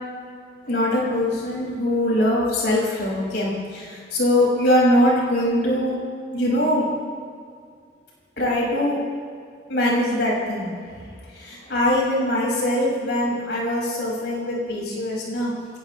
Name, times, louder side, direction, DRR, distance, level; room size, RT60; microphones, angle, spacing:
voice 1, 0.6-6.0 6.3-6.9 8.4-9.0 9.7-10.7 11.3-15.5, left 1 dB, 90° left, -5 dB, 5.7 m, -22 dB
25.5 x 18.0 x 3.1 m, 2.1 s
head